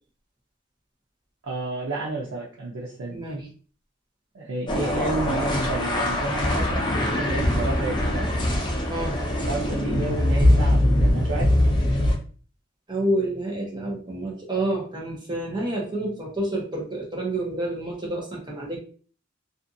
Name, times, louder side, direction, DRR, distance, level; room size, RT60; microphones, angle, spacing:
voice 1, 1.4-3.2 4.3-8.3 9.4-11.6, right 2 dB, 80° right, -3 dB, 0.5 m, -31 dB
voice 2, 3.1-3.5 8.9-9.2 12.9-18.8, right 1 dB, 25° right, -3 dB, 0.9 m, -28 dB
sound 1, 4.7-12.2, left 1 dB, 25° left, 0.6 m, -22 dB
2.5 x 2.5 x 2.6 m, 0.41 s
head